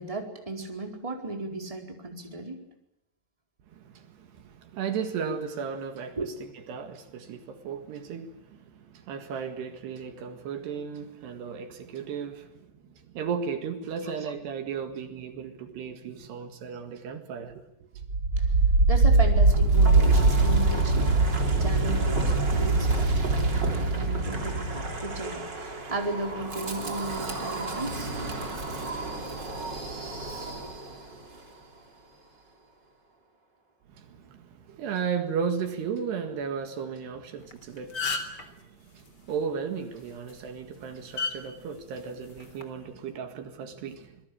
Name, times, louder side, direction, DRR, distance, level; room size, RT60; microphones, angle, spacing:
voice 1, 0.0-2.6 6.2-6.3 14.3-14.4 18.4-18.5 18.9-28.1 30.6-30.7, right 2 dB, 10° right, 4.0 m, -35 dB
voice 2, 3.7-17.9 33.9-44.2, right 6 dB, 70° right, 3.8 m, -35 dB
Wind, 18.0-31.0, right 3 dB, 25° right, 3.7 m, -24 dB
sound 1, 37.4-37.5 37.8-38.4 40.1-40.3 41.2-41.3 42.4-42.6, left 4 dB, 25° left, 3.3 m, -30 dB
27.5 x 22.0 x 8.7 m
omnidirectional pair, 5.0 m